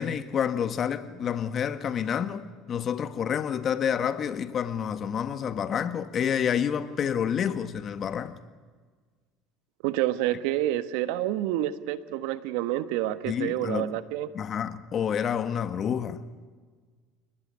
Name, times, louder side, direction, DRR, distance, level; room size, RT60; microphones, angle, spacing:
voice 1, 0.0-8.4 13.3-13.9 14.3-16.3, left 8 dB, 40° left, 1.7 m, -29 dB
voice 2, 9.8-14.3, right 14 dB, 80° right, 1.4 m, -28 dB
29.5 x 19.5 x 9.8 m
supercardioid pair, 115°, 0 cm